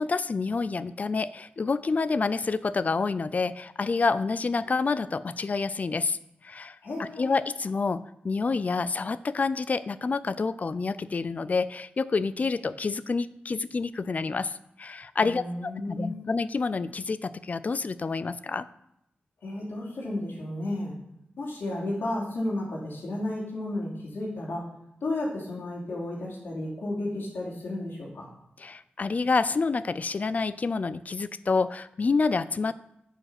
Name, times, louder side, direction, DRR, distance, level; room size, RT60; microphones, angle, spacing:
voice 1, 0.0-6.2 6.4-15.4 15.9-18.7 28.6-32.7, left 4 dB, 45° left, 16 dB, 0.4 m, -28 dB
voice 2, 6.8-7.3 15.2-16.2 19.4-21.0 21.4-24.7 25.0-28.3, left 1 dB, 85° left, -3 dB, 3.0 m, -33 dB
9.0 x 5.4 x 5.9 m, 0.80 s
wide cardioid pair, 115°, 4 cm